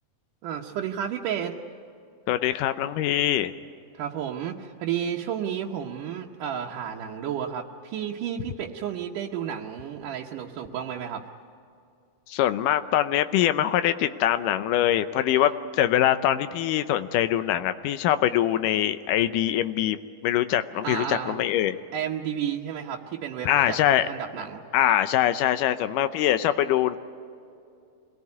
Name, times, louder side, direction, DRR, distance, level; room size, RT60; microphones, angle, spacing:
voice 1, 0.4-1.6 3.9-11.2 15.4-15.5 20.8-21.4 21.9-23.8 24.0-24.6, right 9 dB, 80° right, -1 dB, 2.6 m, -32 dB
voice 2, 2.3-3.5 12.3-21.8 23.5-24.1 24.7-27.0, left 12 dB, 90° left, 11 dB, 2.4 m, -23 dB
26.0 x 18.5 x 9.6 m, 2.5 s
omnidirectional pair, 3.7 m